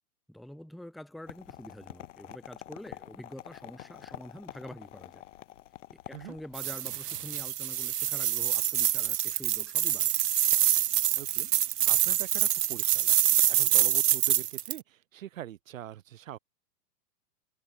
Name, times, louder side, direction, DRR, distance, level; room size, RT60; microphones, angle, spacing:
voice 1, 0.3-5.2 5.9-10.1, left 1 dB, ahead, 0.6 m, -46 dB
sound 1, 1.3-6.7, left 13 dB, 45° left, 3.8 m, -47 dB
sound 2, 6.6-14.8, right 12 dB, 70° right, 1.2 m, -26 dB
voice 2, 11.2-11.5 11.9-16.4, right 12 dB, 50° right, 3.4 m, -43 dB
hypercardioid pair, 170°, 49 cm